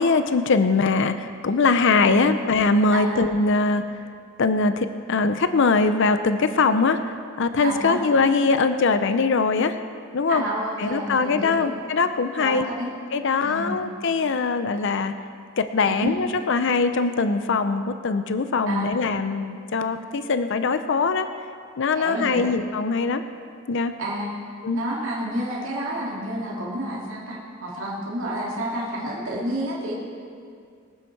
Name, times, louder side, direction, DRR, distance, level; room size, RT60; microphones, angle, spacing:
voice 1, 0.0-3.8 4.4-9.8 10.1-10.4 10.8-12.7 13.1-15.2 15.6-21.3 21.8-23.2 23.7-23.9 24.6-24.8, left 4 dB, 60° left, 10 dB, 0.6 m, -22 dB
voice 2, 2.1-2.4 2.9-3.2 7.6-8.0 10.3-11.7 12.4-12.9 13.4-13.7 15.8-16.1 18.7-19.0 21.9-22.5 24.0-24.3 24.7-29.9, right 1 dB, 70° right, -5 dB, 2.5 m, -29 dB
22.5 x 9.0 x 4.7 m, 2.3 s
head